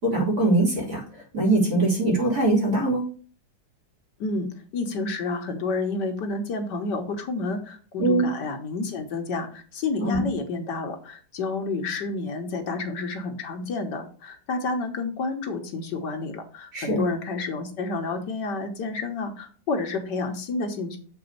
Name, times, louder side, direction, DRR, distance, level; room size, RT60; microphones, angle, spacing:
voice 1, 0.0-3.1 8.0-8.3 10.0-10.2 16.7-17.0, right 2 dB, 55° right, -3 dB, 3.6 m, -22 dB
voice 2, 4.2-21.0, left 3 dB, 70° left, 5 dB, 1.7 m, -30 dB
7.3 x 3.9 x 6.6 m, 0.41 s
omnidirectional pair, 1.9 m